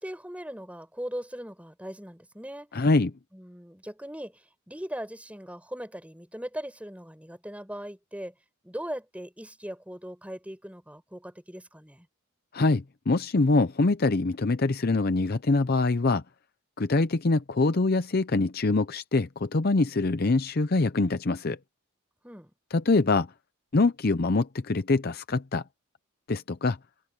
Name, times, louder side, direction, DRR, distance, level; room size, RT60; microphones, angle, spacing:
voice 1, 0.0-2.9 3.3-8.3 8.6-12.1 22.2-22.5, equal, 5° right, 7.9 m, -39 dB
voice 2, 2.7-3.1 12.5-16.2 16.8-21.6 22.7-23.3 23.7-25.6 26.3-26.8, left 3 dB, 45° left, 0.6 m, -24 dB
head